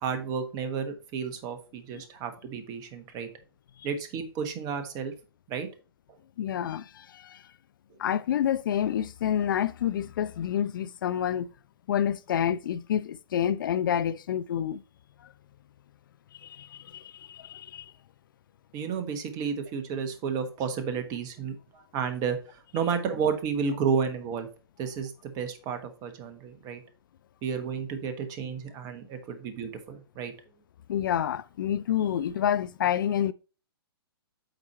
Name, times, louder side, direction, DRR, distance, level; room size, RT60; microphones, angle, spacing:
voice 1, 0.0-3.3 3.8-5.1 5.5-5.7 7.9-8.0 18.7-24.5 24.8-26.8 27.4-30.3, right 6 dB, 30° right, 1.2 m, -32 dB
voice 2, 6.4-7.4 8.0-11.5 11.9-14.8 16.3-17.9 30.9-33.3, left 10 dB, 55° left, 0.4 m, -28 dB
7.9 x 4.3 x 4.1 m
figure-of-eight pair, 120°, 13 cm